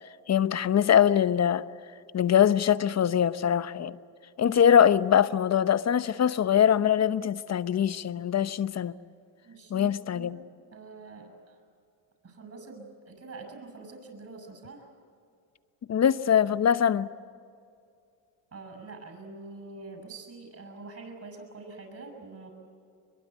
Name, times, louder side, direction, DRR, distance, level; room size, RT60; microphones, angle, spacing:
voice 1, 0.3-1.6 2.1-4.0 4.4-8.9 9.7-10.4 15.9-17.1, left 9 dB, 35° left, 0.9 m, -23 dB
voice 2, 9.4-11.6 12.2-14.9 18.5-22.5, right 3 dB, 35° right, 7.4 m, -45 dB
23.0 x 22.5 x 8.3 m
supercardioid pair, 85°, 47 cm